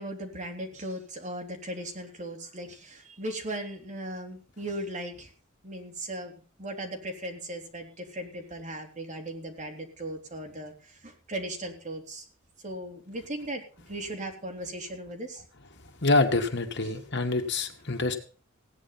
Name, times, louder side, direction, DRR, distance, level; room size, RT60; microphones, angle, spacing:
voice 1, 0.0-5.3 5.6-6.3 6.6-12.2 12.6-15.4, right 1 dB, 35° right, 2 dB, 3.5 m, -37 dB
voice 2, 16.0-18.2, left 2 dB, 60° left, 4 dB, 2.2 m, -26 dB
17.0 x 10.0 x 5.9 m, 0.39 s
head